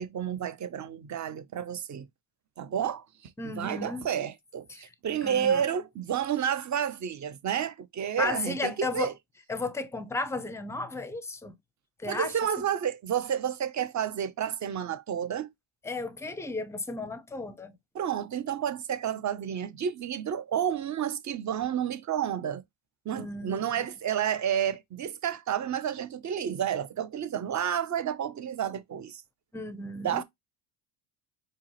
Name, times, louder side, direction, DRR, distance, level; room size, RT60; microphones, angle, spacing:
voice 1, 0.0-2.1 2.6-3.3 3.6-9.1 12.1-15.5 17.9-22.6 23.0-29.2 30.0-30.2, right 9 dB, 35° right, 0.9 m, -30 dB
voice 2, 3.4-4.1 4.7-4.9 5.2-5.6 8.2-9.1 9.5-11.5 12.0-12.3 15.8-17.8 23.1-23.9 29.5-30.2, left 3 dB, 5° left, 0.6 m, -34 dB
4.6 x 3.0 x 3.0 m
cardioid pair, 110°, 49 cm